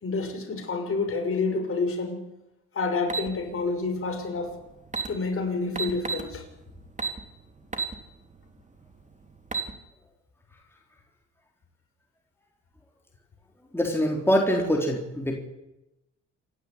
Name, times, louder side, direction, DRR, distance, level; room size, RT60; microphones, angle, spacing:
voice 1, 0.0-2.2 2.7-4.6 5.1-6.4, left 3 dB, 45° left, 4 dB, 6.4 m, -28 dB
sound 1, 3.1-3.3 4.5-4.6 4.9-5.1 5.8-6.3 7.0-7.2 7.7-8.0 8.4-8.5 9.3-9.7, right 5 dB, 25° right, 3.4 m, -29 dB
voice 2, 13.7-15.3, equal, 10° left, 0 dB, 3.9 m, -24 dB
27.0 x 12.0 x 9.9 m, 0.94 s
cardioid pair, 90°, 30 cm